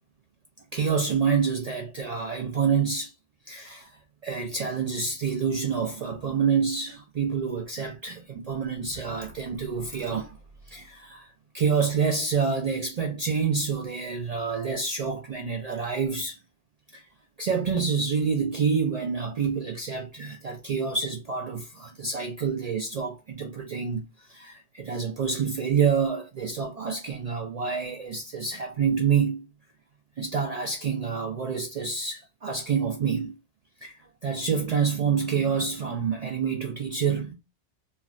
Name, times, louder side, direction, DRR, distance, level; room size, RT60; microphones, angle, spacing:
voice 1, 0.7-3.1 3.5-3.9 4.2-10.4 10.7-16.4 16.9-17.0 17.4-29.5 30.2-33.4 33.8-37.3, right 6 dB, 70° right, 0.3 m, -27 dB
3.3 x 2.2 x 2.4 m
omnidirectional pair, 1.2 m